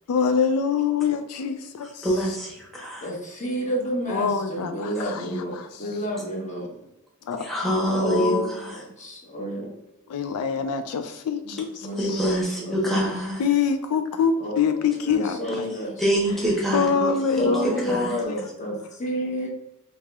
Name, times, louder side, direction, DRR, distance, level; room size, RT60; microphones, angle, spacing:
voice 1, 0.1-2.1 4.1-5.4 7.3-8.0 10.1-12.4 13.4-15.8 16.7-17.8, left 6 dB, 80° left, 0.3 m, -25 dB
voice 2, 2.0-3.1 7.4-8.8 12.0-13.4 16.0-17.1 17.4-18.1, equal, ahead, 0.9 m, -25 dB
voice 3, 3.0-5.5 5.8-6.7 7.9-9.7 11.4-11.5 11.8-12.2 12.6-13.0 14.4-16.0 17.4-19.5, equal, 35° left, 1.0 m, -29 dB
4.6 x 2.9 x 2.3 m
head